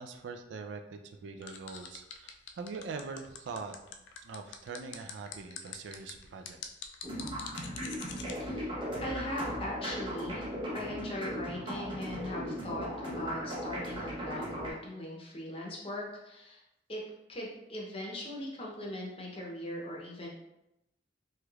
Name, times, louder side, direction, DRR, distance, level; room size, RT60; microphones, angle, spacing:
voice 1, 0.0-3.7 4.2-6.6, right 4 dB, 70° right, 5 dB, 0.3 m, -43 dB
sound 1, 1.4-8.3, left 7 dB, 70° left, 0.3 m, -44 dB
sound 2, 7.0-14.7, equal, 25° right, 0.6 m, -37 dB
voice 2, 8.4-8.7 9.0-10.5 10.7-16.6 16.9-17.0 17.3-20.3, left 1 dB, 30° left, -3 dB, 0.7 m, -40 dB
3.2 x 3.0 x 2.3 m, 0.89 s
head